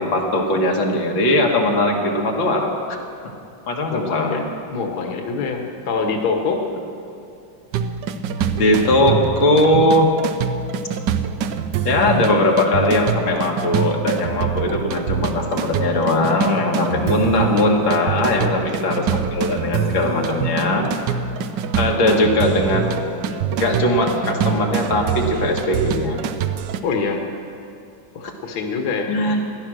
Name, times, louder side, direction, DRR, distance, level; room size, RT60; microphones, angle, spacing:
voice 1, 0.0-2.7 3.7-4.4 8.6-10.1 11.9-20.9 21.8-22.8 23.6-26.2 29.1-29.4, left 1 dB, 85° left, 0 dB, 2.4 m, -19 dB
voice 2, 3.9-4.4 4.7-6.6 18.4-18.7 21.9-22.2 26.8-27.2 28.1-29.0, left 4 dB, 60° left, 2 dB, 1.7 m, -25 dB
sound 1, 7.7-26.8, right 7 dB, 75° right, 1.3 m, -25 dB
16.5 x 11.0 x 6.3 m, 2.6 s
omnidirectional pair, 2.1 m